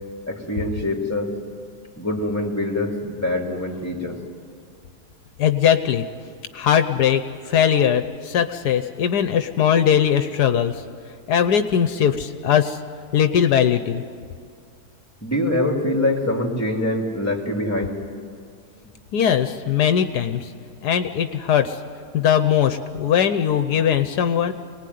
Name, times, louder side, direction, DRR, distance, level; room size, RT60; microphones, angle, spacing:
voice 1, 0.3-1.3 2.0-4.2 15.2-18.0, left 1 dB, 10° left, 1 dB, 2.7 m, -24 dB
voice 2, 5.4-6.1 6.5-10.7 11.3-12.8 13.1-14.0 19.1-20.5 20.8-21.8 22.1-24.5, left 9 dB, 75° left, 9 dB, 1.4 m, -20 dB
25.5 x 19.5 x 9.4 m, 2.1 s
omnidirectional pair, 1.8 m